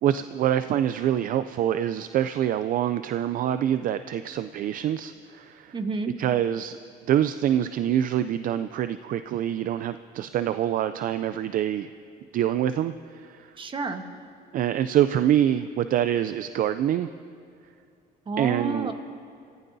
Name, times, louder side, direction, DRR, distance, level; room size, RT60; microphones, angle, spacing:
voice 1, 0.0-5.8 6.2-6.8 7.1-11.9 12.3-13.5 14.5-17.1 18.4-18.9, right 11 dB, 55° right, 12 dB, 0.4 m, -25 dB
voice 2, 5.7-6.2 13.6-14.0 18.3-18.9, right 3 dB, 30° right, 6 dB, 1.3 m, -29 dB
27.5 x 15.0 x 2.7 m, 2.5 s
cardioid pair, 110°, 17 cm